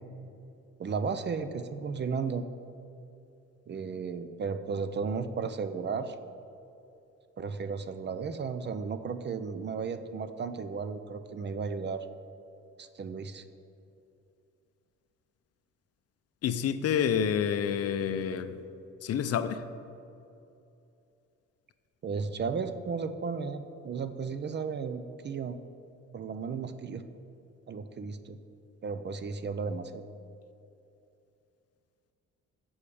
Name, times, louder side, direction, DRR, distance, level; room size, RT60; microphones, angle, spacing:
voice 1, 0.8-2.4 3.7-6.2 7.4-12.1 12.8-13.4 22.0-25.6 26.1-27.0 27.7-28.4 28.8-30.1, right 5 dB, 35° right, 11 dB, 0.5 m, -34 dB
voice 2, 16.4-18.6 19.0-19.6, left 8 dB, 55° left, 11 dB, 0.5 m, -28 dB
7.1 x 4.9 x 6.9 m, 2.7 s
cardioid pair, 90°, 30 cm